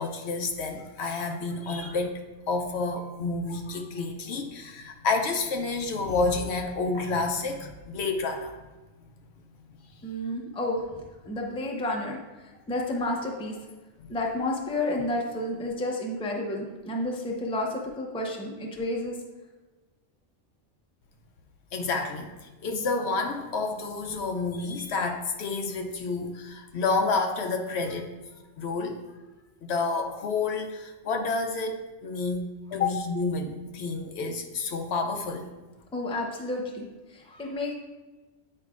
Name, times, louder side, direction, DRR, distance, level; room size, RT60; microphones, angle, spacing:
voice 1, 0.0-8.5 21.7-22.3 22.6-28.1 28.6-29.0 29.6-35.5, left 3 dB, 65° left, 4 dB, 0.8 m, -29 dB
voice 2, 10.0-10.8 11.3-12.2 12.7-13.6 14.1-19.1 35.9-36.9 37.1-37.7, left 1 dB, 5° left, -1 dB, 0.5 m, -30 dB
8.7 x 4.7 x 2.4 m, 1.2 s
omnidirectional pair, 1.3 m